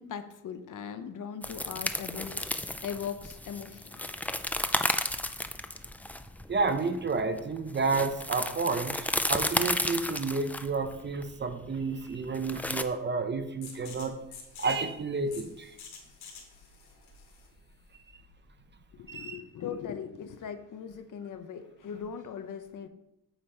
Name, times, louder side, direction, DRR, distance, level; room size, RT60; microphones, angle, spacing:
voice 1, 0.0-2.3 2.8-4.2 4.5-4.7 18.9-22.9, left 7 dB, 55° left, 9 dB, 0.9 m, -39 dB
sound 1, 1.4-12.8, left 1 dB, 5° left, 0.4 m, -33 dB
voice 2, 6.5-14.2 14.6-15.7 19.1-19.4, right 4 dB, 30° right, 9 dB, 0.7 m, -30 dB
sound 2, 13.6-19.1, left 5 dB, 90° left, 2.4 m, -50 dB
9.0 x 7.1 x 4.5 m, 0.87 s
cardioid pair, 140°, 36 cm